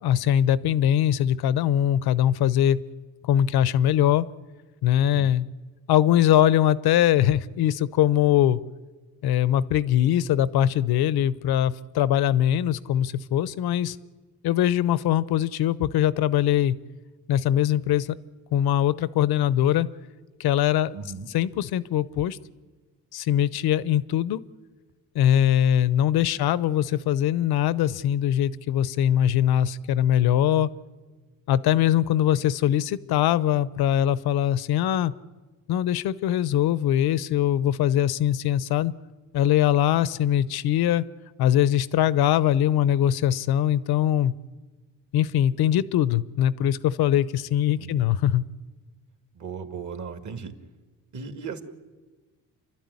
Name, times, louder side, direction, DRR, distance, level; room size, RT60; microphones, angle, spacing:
voice 1, 0.0-2.8 3.2-4.3 4.8-5.5 5.9-8.6 9.2-14.0 14.4-16.8 17.3-18.1 18.5-19.9 20.4-21.0 21.3-22.4 23.1-24.4 25.1-30.7 31.5-35.1 35.7-38.9 39.3-41.0 41.4-44.3 45.1-48.4, left 11 dB, 75° left, 17 dB, 0.9 m, -22 dB
voice 2, 20.9-21.3 47.8-48.0 49.3-50.5 51.1-51.6, right 6 dB, 50° right, 7 dB, 2.5 m, -36 dB
28.5 x 12.5 x 9.7 m, 1.3 s
cardioid pair, 80°, 37 cm